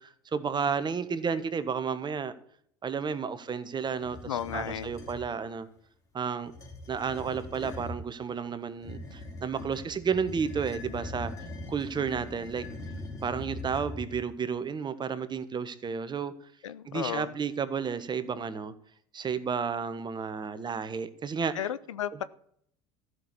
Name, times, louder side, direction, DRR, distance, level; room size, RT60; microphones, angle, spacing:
voice 1, 0.0-2.3 2.8-5.7 6.1-6.5 6.9-11.3 11.7-12.7 13.2-16.3 16.9-18.7 19.1-21.6, right 6 dB, 30° right, 1.3 m, -32 dB
sound 1, 4.0-5.3 6.4-8.0 8.8-14.3, left 2 dB, 20° left, 3.6 m, -41 dB
voice 2, 4.3-4.9 16.6-17.3 21.5-22.2, left 10 dB, 85° left, 0.6 m, -34 dB
13.5 x 6.3 x 8.4 m
hypercardioid pair, 70°, 16 cm